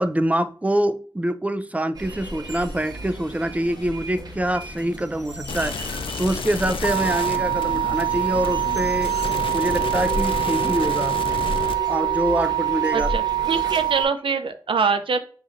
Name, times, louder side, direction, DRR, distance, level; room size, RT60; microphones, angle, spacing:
voice 1, 0.0-9.2 9.5-11.2 11.9-13.1, right 1 dB, 15° right, 0.4 m, -25 dB
sound 1, 1.9-14.1, equal, 45° right, 1.3 m, -34 dB
sound 2, 5.5-11.7, left 5 dB, 75° left, 0.4 m, -31 dB
sound 3, 6.8-14.0, right 14 dB, 55° left, 0.8 m, -24 dB
voice 2, 12.9-15.2, right 5 dB, 70° right, 0.5 m, -24 dB
5.8 x 3.0 x 2.5 m
cardioid pair, 50°, 9 cm